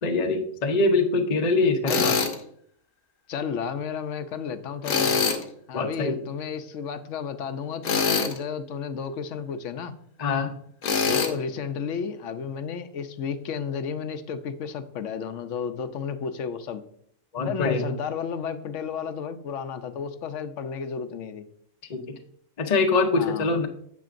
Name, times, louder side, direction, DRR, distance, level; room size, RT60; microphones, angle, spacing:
voice 1, 0.0-2.1 5.7-6.2 10.2-10.5 17.3-17.8 21.9-22.1 22.6-23.7, left 3 dB, 40° left, 4 dB, 0.6 m, -23 dB
voice 2, 1.5-2.0 3.3-5.2 5.7-10.0 11.1-16.8 17.4-21.4 23.2-23.6, left 6 dB, 65° left, 10 dB, 0.9 m, -32 dB
Tools, 1.9-2.3 4.8-5.4 7.8-8.4 10.8-11.3, left 5 dB, 85° left, 1.5 m, -23 dB
9.3 x 7.5 x 2.5 m, 0.65 s
omnidirectional pair, 1.5 m